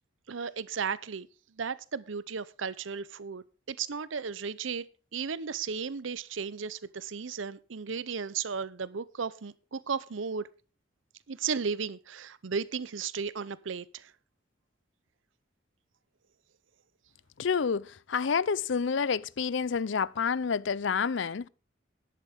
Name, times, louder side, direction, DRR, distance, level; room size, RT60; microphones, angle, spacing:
voice 1, 0.3-1.3 1.6-4.9 5.1-10.5 11.3-14.1, right 6 dB, 85° right, 0.7 m, -35 dB
voice 2, 17.4-21.5, left 6 dB, 75° left, 0.5 m, -29 dB
12.0 x 11.0 x 3.5 m
head